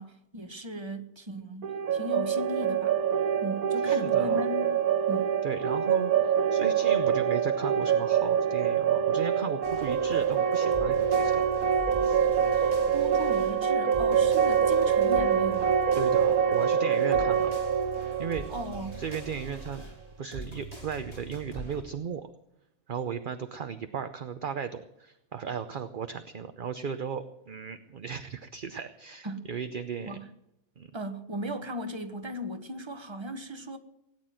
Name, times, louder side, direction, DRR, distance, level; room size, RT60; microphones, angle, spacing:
voice 1, 0.0-3.0 3.4-4.8 5.1-5.4 12.9-15.8 18.5-19.0 29.2-29.5 30.0-30.3 30.9-33.8, equal, 20° right, 1.2 m, -37 dB
sound 1, 1.6-19.4, right 8 dB, 80° right, 1.5 m, -25 dB
voice 2, 3.8-4.4 5.4-11.5 12.0-12.2 15.9-17.5 18.2-18.4 19.0-19.8 20.2-22.3 22.9-30.2 30.8-30.9, right 6 dB, 45° right, 0.7 m, -36 dB
sound 2, 9.6-21.8, right 2 dB, 20° left, 5.2 m, -43 dB
18.0 x 9.5 x 7.7 m
omnidirectional pair, 1.5 m